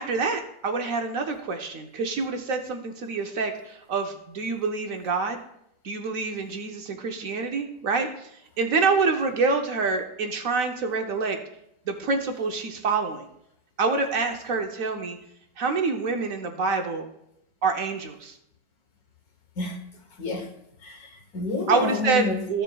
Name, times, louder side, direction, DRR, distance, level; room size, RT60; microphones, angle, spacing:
voice 1, 0.0-5.4 5.8-8.3 8.6-11.4 11.9-13.3 13.8-15.2 15.6-17.1 17.6-18.4 21.7-22.6, right 4 dB, 60° right, 1.0 m, -26 dB
voice 2, 20.2-20.5 20.8-22.5, left 3 dB, 55° left, 1.4 m, -29 dB
14.5 x 6.8 x 2.3 m
omnidirectional pair, 2.0 m